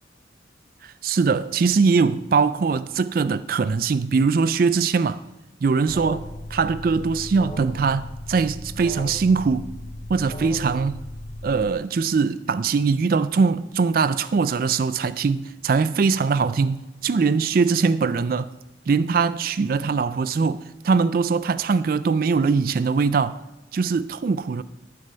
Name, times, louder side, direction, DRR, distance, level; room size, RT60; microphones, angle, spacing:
voice 1, 0.8-5.2 5.6-9.7 10.1-11.0 11.4-18.5 18.9-23.4 23.7-24.6, right 5 dB, 50° right, 0.3 m, -22 dB
Alarm, 5.9-11.7, left 1 dB, 30° left, 0.6 m, -36 dB
12.0 x 9.5 x 5.6 m
head